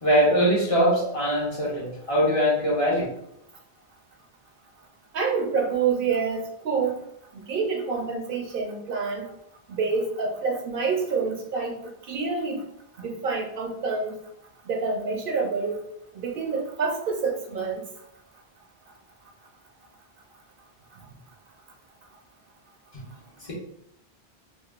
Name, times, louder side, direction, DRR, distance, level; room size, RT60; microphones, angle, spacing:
voice 1, 0.0-3.1 23.4-23.5, equal, 40° left, -5 dB, 0.7 m, -22 dB
voice 2, 5.1-6.9 7.3-9.2 9.7-11.8 12.1-12.6 13.0-14.1 14.7-15.8 16.1-17.8, right 5 dB, 65° right, 0 dB, 0.7 m, -27 dB
3.3 x 2.3 x 2.3 m, 0.77 s
omnidirectional pair, 1.0 m